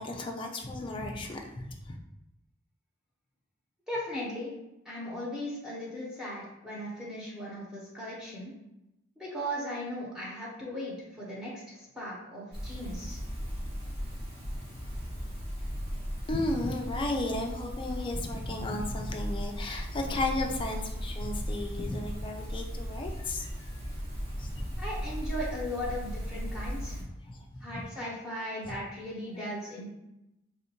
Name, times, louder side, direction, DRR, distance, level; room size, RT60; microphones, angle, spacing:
voice 1, 0.0-2.0 16.3-23.5 24.4-24.6 27.2-27.6 28.7-28.8, left 2 dB, 25° left, 2 dB, 0.4 m, -34 dB
voice 2, 3.9-4.5 4.8-8.5 9.2-13.2 24.8-27.0 27.6-29.9, equal, 5° right, -7 dB, 0.9 m, -37 dB
sound 1, 12.5-27.0, equal, 30° right, 0.9 m, -37 dB
3.5 x 2.5 x 2.8 m, 0.90 s
head